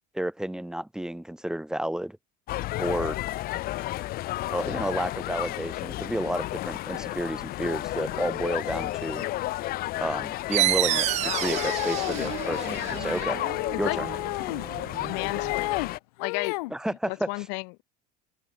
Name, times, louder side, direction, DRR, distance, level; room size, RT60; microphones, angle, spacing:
voice 1, 0.1-2.2 2.8-3.2 4.5-9.3 10.0-13.4 13.8-14.1 16.7-17.5, right 1 dB, 5° right, 1.9 m, -31 dB
sound 1, 2.5-16.0, left 16 dB, 50° left, 2.4 m, -32 dB
sound 2, 10.5-15.8, right 15 dB, 35° right, 0.4 m, -30 dB
sound 3, 11.2-12.3 13.3-14.7 15.0-15.9 16.2-16.7, left 23 dB, 90° left, 0.4 m, -32 dB
voice 2, 15.0-16.6 17.1-17.8, left 35 dB, 65° left, 1.7 m, -33 dB
supercardioid pair, 130°, 20 cm